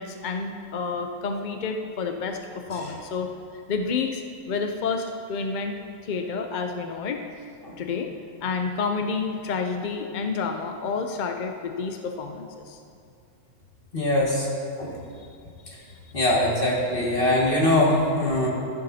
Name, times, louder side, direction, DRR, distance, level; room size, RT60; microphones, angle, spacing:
voice 1, 0.0-3.3 3.7-7.2 7.8-8.2 8.4-12.8 15.2-15.3 15.7-15.9, left 4 dB, 65° left, 5 dB, 0.4 m, -29 dB
voice 2, 13.9-14.5 14.8-15.0 16.1-18.5, left 1 dB, 35° left, -4 dB, 2.1 m, -22 dB
15.0 x 11.0 x 2.8 m, 2.4 s
omnidirectional pair, 1.5 m